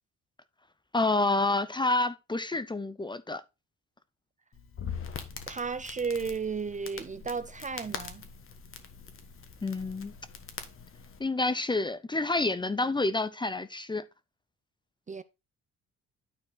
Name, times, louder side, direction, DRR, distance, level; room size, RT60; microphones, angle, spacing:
voice 1, 0.9-3.4 9.6-10.1 11.2-14.0, left 2 dB, 15° left, 0.6 m, -28 dB
Crackle, 4.5-11.2, left 6 dB, 45° left, 1.4 m, -43 dB
voice 2, 5.5-8.3 15.1-15.2, right 5 dB, 25° right, 0.5 m, -34 dB
9.7 x 4.4 x 3.9 m
cardioid pair, 90°, 30 cm